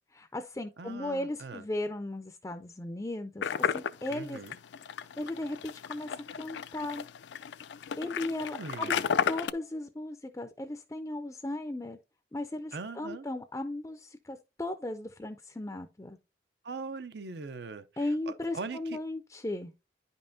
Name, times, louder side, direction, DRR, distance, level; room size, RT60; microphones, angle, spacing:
voice 1, 0.1-4.4 5.2-7.1 8.0-12.0 12.3-16.2 18.0-19.7, left 1 dB, 15° left, 0.4 m, -36 dB
voice 2, 0.8-1.6 4.1-4.6 8.1-9.1 12.7-13.3 16.6-19.0, right 4 dB, 75° right, 0.6 m, -41 dB
sound 1, 3.4-9.5, left 7 dB, 85° left, 0.4 m, -33 dB
10.0 x 5.4 x 2.7 m
head